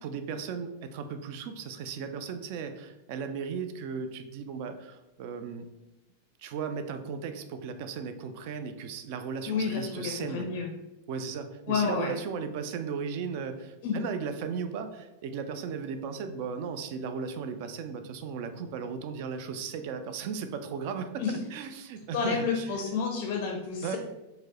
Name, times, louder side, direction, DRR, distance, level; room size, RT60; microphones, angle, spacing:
voice 1, 0.0-5.7 6.4-10.6 11.1-21.2 21.5-22.7 23.8-24.0, right 6 dB, 45° right, 8 dB, 0.3 m, -36 dB
voice 2, 9.5-10.7 11.7-12.1 13.8-14.0 21.2-21.4 22.1-24.0, left 5 dB, 45° left, 1 dB, 0.4 m, -30 dB
4.5 x 2.1 x 2.8 m, 1.0 s
figure-of-eight pair, 90°, 0 cm